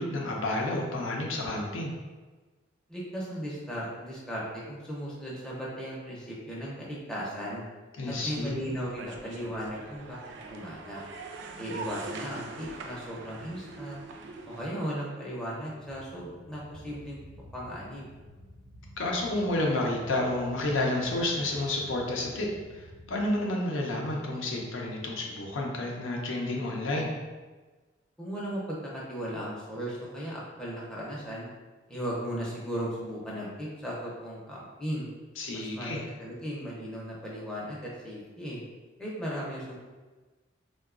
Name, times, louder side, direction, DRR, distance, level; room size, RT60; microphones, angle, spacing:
voice 1, 0.0-1.9 8.0-8.6 19.0-27.1 35.4-36.0, left 1 dB, 75° left, -1 dB, 0.5 m, -30 dB
voice 2, 2.9-7.6 8.1-11.0 11.6-14.0 14.5-17.2 17.5-18.1 28.2-31.5 31.9-35.1 35.5-38.6 39.0-39.8, equal, 5° left, -6 dB, 0.6 m, -36 dB
sound 1, 8.1-14.6, right 4 dB, 65° right, 0.3 m, -43 dB
sound 2, 15.6-23.4, equal, 85° right, 0.8 m, -51 dB
3.7 x 2.2 x 2.4 m, 1.3 s
head